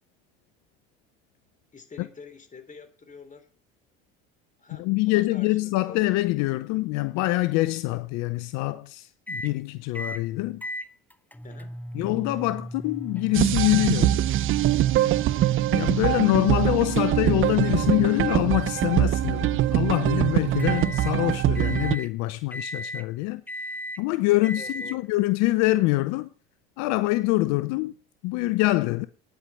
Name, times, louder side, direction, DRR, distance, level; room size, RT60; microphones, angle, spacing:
voice 1, 1.7-3.5 4.6-6.0 11.4-11.7 24.3-25.0, left 5 dB, 25° left, 3.2 m, -46 dB
voice 2, 4.8-10.6 11.9-14.2 15.7-23.4 24.0-26.3 26.8-27.9 28.2-29.1, left 19 dB, 70° left, 0.8 m, -25 dB
sound 1, 9.3-9.5 9.9-10.2 10.6-21.1 21.5-22.1 22.5-23.1 23.5-24.0 24.4-25.0, equal, 5° left, 0.7 m, -39 dB
sound 2, 13.3-22.0, right 13 dB, 45° right, 0.6 m, -23 dB
9.9 x 8.1 x 7.4 m
supercardioid pair, 85°, 29 cm